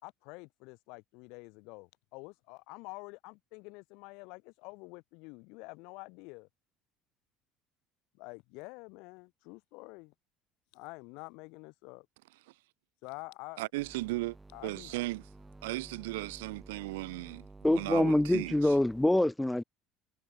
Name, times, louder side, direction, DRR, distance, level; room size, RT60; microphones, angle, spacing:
voice 1, 0.0-6.5 8.1-10.1 10.7-12.1 13.0-13.6 14.5-14.9, left 28 dB, 65° left, 4.8 m, -48 dB
voice 2, 13.6-14.4 14.6-15.2 15.6-18.8, right 20 dB, 75° right, 1.9 m, -36 dB
sound 1, 13.8-19.1, right 2 dB, 15° right, 3.8 m, -52 dB
voice 3, 17.6-19.6, left 1 dB, 5° left, 0.4 m, -25 dB
hypercardioid pair, 65°, 0 cm